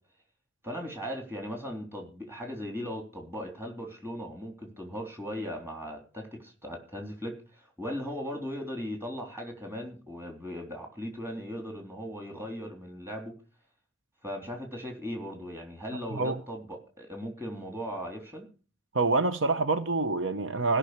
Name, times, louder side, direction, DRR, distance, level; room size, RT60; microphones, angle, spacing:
voice 1, 0.6-13.3 14.2-18.5, equal, 10° right, 3.7 m, -38 dB
voice 2, 18.9-20.8, right 3 dB, 75° right, 0.9 m, -26 dB
16.5 x 6.1 x 8.1 m
head